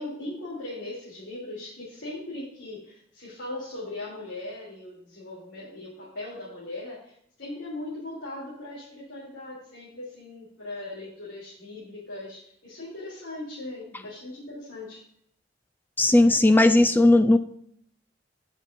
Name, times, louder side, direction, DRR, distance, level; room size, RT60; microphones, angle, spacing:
voice 1, 0.0-15.0, left 2 dB, 80° left, -6 dB, 3.0 m, -39 dB
voice 2, 16.0-17.4, left 2 dB, 10° left, 10 dB, 0.3 m, -17 dB
17.0 x 6.2 x 2.6 m, 0.69 s
head